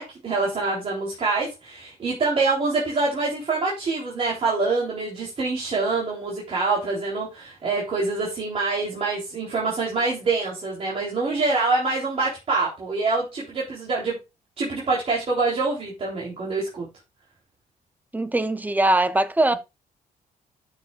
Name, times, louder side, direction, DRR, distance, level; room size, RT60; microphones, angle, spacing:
voice 1, 0.0-14.2 14.6-16.9, right 3 dB, 40° right, 3.7 m, -25 dB
voice 2, 18.1-19.5, right 2 dB, 10° right, 0.7 m, -21 dB
12.5 x 6.7 x 2.5 m
cardioid pair, 135°, 15 cm